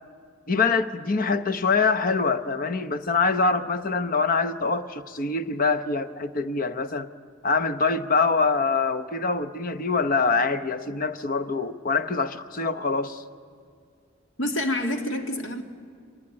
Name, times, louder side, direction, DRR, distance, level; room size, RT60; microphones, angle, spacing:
voice 1, 0.5-7.1 7.4-13.2, left 4 dB, 45° left, 0.8 m, -24 dB
voice 2, 14.4-15.6, left 1 dB, 65° left, 2.1 m, -27 dB
26.5 x 20.0 x 9.8 m
head